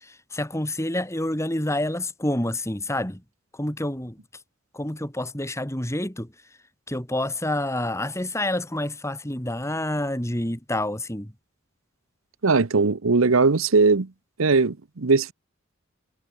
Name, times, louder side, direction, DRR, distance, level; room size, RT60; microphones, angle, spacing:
voice 1, 0.0-3.2 3.5-4.2 4.7-6.3 6.9-11.3, left 1 dB, 15° left, 3.1 m, -28 dB
voice 2, 12.4-14.1 14.4-15.3, right 4 dB, 85° right, 0.9 m, -19 dB
head